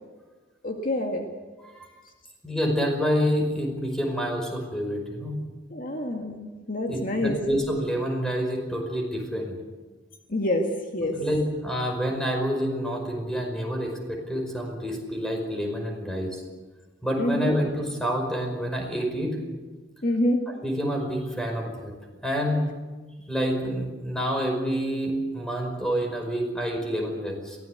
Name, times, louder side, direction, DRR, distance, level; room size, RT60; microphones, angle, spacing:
voice 1, 0.6-1.3 5.7-7.4 10.3-10.7 10.9-11.2 17.2-17.6 20.0-20.4, left 1 dB, 50° left, 2 dB, 2.0 m, -26 dB
voice 2, 2.4-5.4 6.9-9.6 11.1-16.4 17.0-19.4 20.5-21.9 22.2-22.6 23.3-27.6, equal, 5° left, 1 dB, 5.3 m, -28 dB
22.5 x 17.0 x 8.1 m, 1.3 s
head